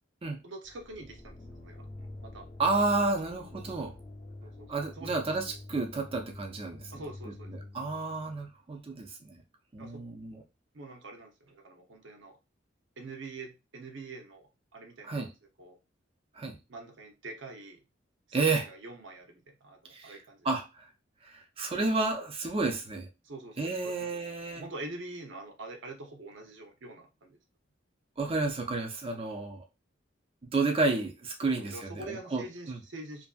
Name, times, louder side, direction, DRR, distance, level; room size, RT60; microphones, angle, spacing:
voice 1, 0.4-2.7 4.4-5.2 6.9-7.5 9.8-10.0 10.7-12.4 13.0-15.3 15.6-15.8 16.7-17.8 18.3-20.5 23.2-24.2 24.5-27.4 29.1-29.2 31.4-33.3, right 2 dB, 70° right, 0.7 m, -45 dB
sound 1, 0.6-8.5, left 2 dB, 40° left, 0.7 m, -47 dB
voice 2, 2.6-3.9 4.7-6.9 7.5-9.4 9.7-10.4 15.0-15.3 16.4-16.6 18.3-18.7 19.9-20.2 20.4-20.9 21.2-23.1 23.6-24.6 28.2-29.6 30.5-32.8, right 3 dB, 30° right, 0.4 m, -31 dB
2.6 x 2.5 x 2.3 m
head